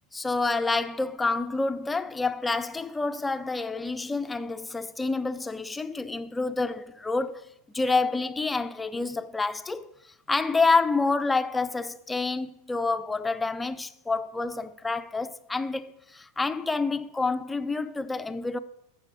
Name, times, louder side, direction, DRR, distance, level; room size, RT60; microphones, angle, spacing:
voice 1, 0.1-7.4 7.7-9.9 10.3-18.6, left 3 dB, 10° left, 0.5 m, -28 dB
7.3 x 6.8 x 6.2 m
hypercardioid pair, 100°, 0 cm